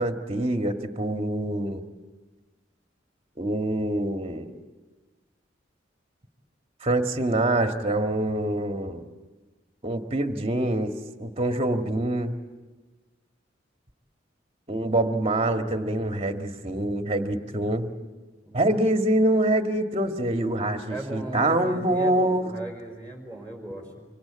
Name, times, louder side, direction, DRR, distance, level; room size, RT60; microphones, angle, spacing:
voice 1, 0.0-1.8 3.4-4.5 6.8-9.0 9.8-10.9 11.2-12.4 14.7-17.9 18.5-22.5, right 1 dB, 30° right, 5 dB, 1.8 m, -25 dB
voice 2, 18.4-18.8 20.9-24.0, right 2 dB, 10° left, 3 dB, 5.0 m, -37 dB
25.5 x 25.0 x 8.7 m, 1.3 s
head